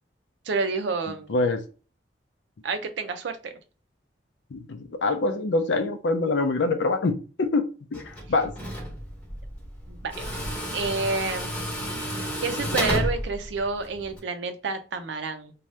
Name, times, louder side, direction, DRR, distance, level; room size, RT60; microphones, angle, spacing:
voice 1, 0.4-1.4 2.6-3.6 9.9-10.2 10.7-11.5 12.4-15.5, right 4 dB, 80° right, 0.5 m, -29 dB
voice 2, 1.3-1.6 4.5-8.5, left 3 dB, 80° left, 0.5 m, -25 dB
Tools, 7.9-14.2, equal, 5° left, 0.8 m, -32 dB
2.7 x 2.3 x 3.1 m
head